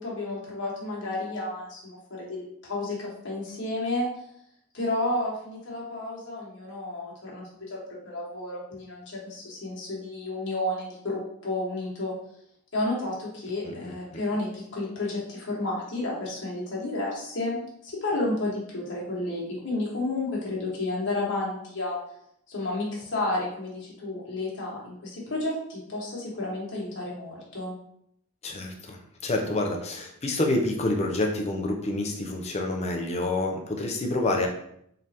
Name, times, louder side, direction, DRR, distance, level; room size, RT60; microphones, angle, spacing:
voice 1, 0.0-4.1 4.7-7.8 8.0-12.1 12.7-22.0 22.5-27.8, left 2 dB, 55° left, -5 dB, 1.3 m, -31 dB
voice 2, 28.4-34.5, left 2 dB, 30° left, 2 dB, 0.5 m, -28 dB
3.8 x 3.1 x 2.8 m, 0.72 s
head